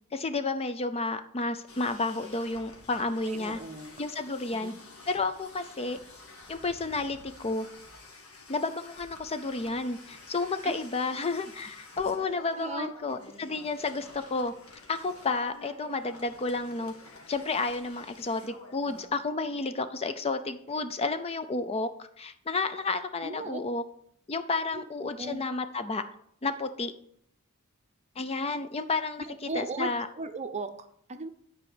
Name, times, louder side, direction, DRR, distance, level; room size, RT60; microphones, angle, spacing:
voice 1, 0.1-3.6 4.0-4.7 5.1-6.0 6.5-7.7 8.5-14.5 14.9-16.9 17.3-23.8 24.3-26.0 26.4-26.9 28.2-30.1, left 3 dB, 25° left, 10 dB, 0.4 m, -31 dB
sound 1, 1.7-19.1, left 2 dB, 75° left, 2.1 m, -50 dB
voice 2, 3.2-3.9 4.5-4.8 10.6-10.8 12.6-12.9 23.2-23.6 24.7-25.4 29.2-31.3, right 3 dB, 30° right, 9 dB, 0.7 m, -37 dB
9.7 x 4.8 x 6.1 m, 0.69 s
head